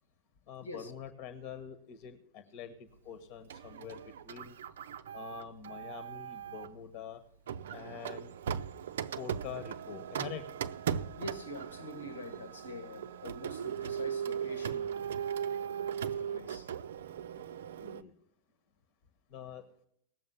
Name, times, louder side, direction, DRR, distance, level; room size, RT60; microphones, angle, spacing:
voice 1, 0.5-4.6 5.1-7.2 7.7-8.3 9.2-10.4 17.8-18.1 19.3-19.6, left 8 dB, 45° left, 1.2 m, -45 dB
Printer, 3.5-6.7 7.5-18.0, right 8 dB, 60° right, 0.5 m, -38 dB
voice 2, 11.2-15.0 16.0-16.7, left 1 dB, 75° left, 1.8 m, -45 dB
19.0 x 7.2 x 5.8 m
figure-of-eight pair, 90°, 0 cm